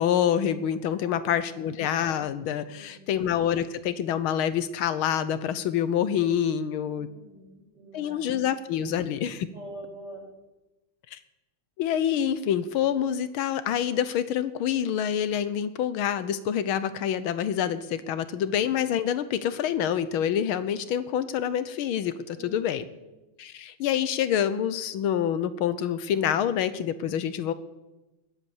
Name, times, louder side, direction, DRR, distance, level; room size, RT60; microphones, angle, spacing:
voice 1, 0.0-7.1 7.9-9.5 11.1-11.2 11.8-22.9 23.4-27.5, left 9 dB, 80° left, 13 dB, 1.6 m, -27 dB
voice 2, 0.8-1.7 2.6-3.1 6.8-8.5 9.4-10.2 22.3-23.1, right 1 dB, 50° right, -3 dB, 6.4 m, -46 dB
20.5 x 8.2 x 7.2 m, 1.0 s
omnidirectional pair, 2.3 m